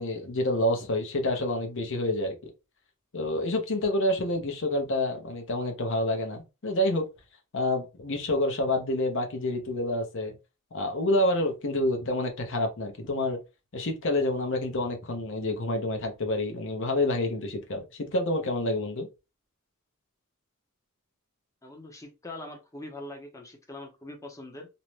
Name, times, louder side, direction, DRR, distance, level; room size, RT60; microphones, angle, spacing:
voice 1, 0.0-2.3 3.1-7.1 7.5-10.4 10.7-13.4 13.7-19.1, left 1 dB, 60° left, 0.7 m, -28 dB
voice 2, 21.6-24.7, left 2 dB, 15° left, 0.6 m, -42 dB
2.6 x 2.1 x 3.1 m
head